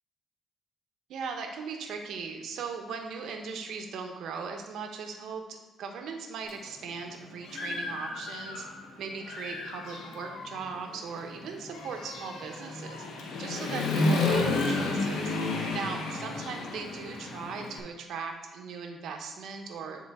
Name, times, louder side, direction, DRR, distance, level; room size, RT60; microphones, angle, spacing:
voice 1, 1.1-8.6 9.0-13.0 13.4-15.3 15.7-20.0, right 5 dB, 75° right, 3 dB, 0.9 m, -38 dB
Human voice / Motorcycle, 6.5-6.6 7.1-8.8 9.2-17.8, left 3 dB, 80° left, 0.9 m, -32 dB
9.8 x 3.7 x 3.6 m, 1.2 s
cardioid pair, 90°, 0 cm